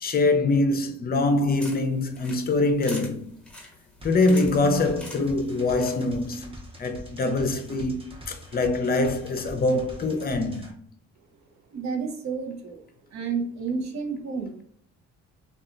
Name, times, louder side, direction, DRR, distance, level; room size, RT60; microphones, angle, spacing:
voice 1, 0.0-3.3 4.0-6.5 6.8-10.7, left 2 dB, 30° left, 0.5 m, -24 dB
sound 1, 1.3-6.3, left 1 dB, 5° left, 0.9 m, -45 dB
sound 2, 4.0-10.7, left 1 dB, 20° right, 0.6 m, -43 dB
voice 2, 11.7-12.8 13.1-14.6, right 5 dB, 65° right, 0.7 m, -30 dB
2.7 x 2.3 x 2.4 m
cardioid pair, 90°, 30 cm